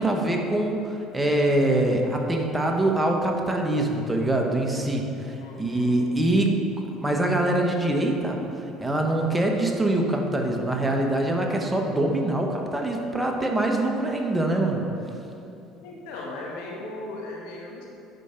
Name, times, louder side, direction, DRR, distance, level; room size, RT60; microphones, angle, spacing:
voice 1, 0.0-6.6 7.0-8.4 8.8-14.8, right 1 dB, 10° right, 1 dB, 1.1 m, -24 dB
voice 2, 5.3-6.0 15.8-17.9, left 2 dB, 85° left, -2 dB, 2.1 m, -37 dB
9.2 x 6.2 x 5.7 m, 2.8 s
supercardioid pair, 105°, 0 cm